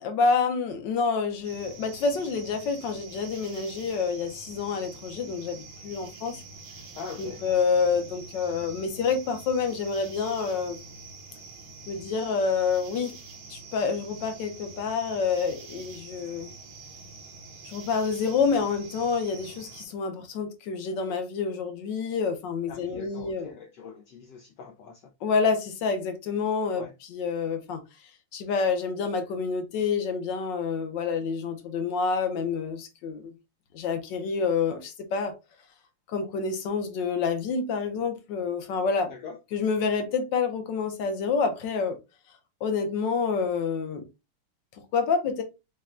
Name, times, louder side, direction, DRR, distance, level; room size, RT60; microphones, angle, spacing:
voice 1, 0.0-6.4 7.2-10.8 11.9-13.2 13.5-16.5 17.6-23.5 25.2-27.8 28.3-33.3 33.7-35.3 36.1-39.1 39.5-42.0 42.6-44.1 44.9-45.4, left 5 dB, 65° left, 1.2 m, -28 dB
sound 1, 1.4-19.8, right 3 dB, 60° right, 1.1 m, -46 dB
voice 2, 7.0-7.5 22.7-25.1 26.7-26.9 39.1-39.4, left 5 dB, 85° left, 0.9 m, -42 dB
6.4 x 2.2 x 2.4 m
omnidirectional pair, 2.4 m